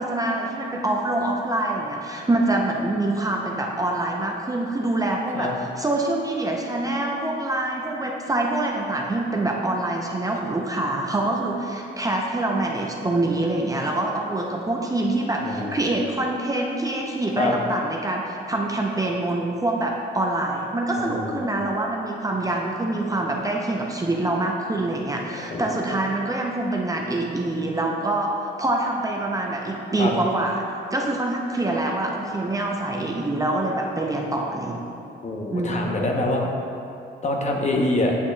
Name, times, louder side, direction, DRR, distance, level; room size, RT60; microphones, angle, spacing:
voice 1, 0.0-28.3 28.6-30.6 30.9-34.8 35.5-35.7, right 2 dB, 15° right, -1 dB, 0.5 m, -25 dB
voice 2, 15.4-15.8 17.4-17.5 21.0-21.5 25.4-25.6 30.0-30.1 35.2-36.5 37.2-38.2, left 2 dB, 35° left, 1 dB, 0.8 m, -25 dB
8.2 x 5.9 x 2.2 m, 2.7 s
cardioid pair, 90°, 20 cm